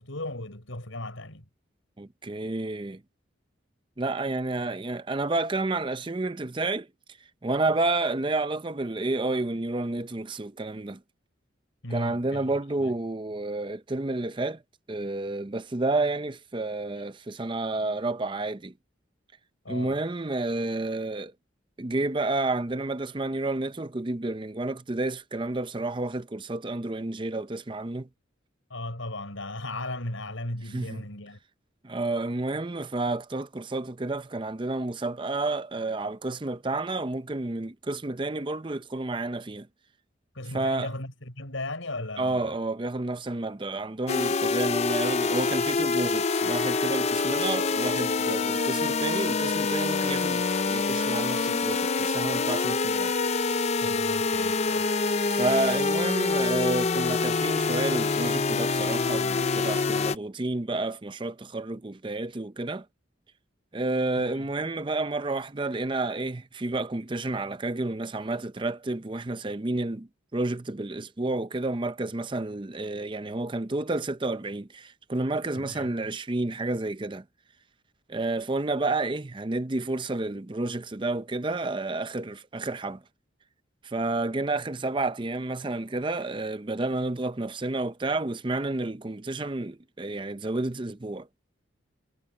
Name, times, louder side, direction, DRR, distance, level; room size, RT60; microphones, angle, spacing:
voice 1, 0.0-1.5 11.8-12.4 12.8-12.9 19.6-20.0 28.7-31.4 40.3-42.6 53.8-54.9 64.2-64.5 75.5-75.9, left 2 dB, 90° left, 6.7 m, -36 dB
voice 2, 2.0-3.0 4.0-6.9 7.4-11.0 11.9-14.6 14.9-18.7 19.7-21.3 21.8-28.1 30.7-31.0 31.8-39.7 40.5-40.9 42.2-53.1 55.3-62.9 63.7-77.2 78.1-83.0 83.8-91.3, right 2 dB, 25° right, 0.6 m, -30 dB
sound 1, 44.1-60.2, left 4 dB, 35° left, 0.5 m, -26 dB
head